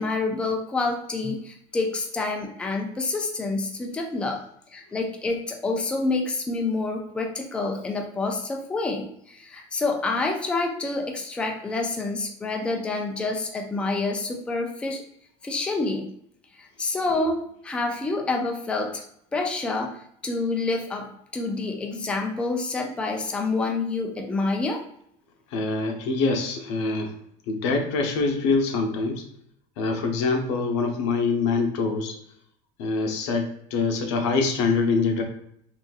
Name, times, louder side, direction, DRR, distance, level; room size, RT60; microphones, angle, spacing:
voice 1, 0.0-4.4 4.7-15.0 15.4-16.1 16.5-19.0 19.3-20.0 20.2-24.8, left 3 dB, 5° left, 2 dB, 0.3 m, -28 dB
voice 2, 25.5-27.1 27.5-29.2 29.8-32.1 32.8-35.2, left 4 dB, 90° left, 3 dB, 0.7 m, -24 dB
3.8 x 2.5 x 2.3 m, 0.69 s
cardioid pair, 155°, 15 cm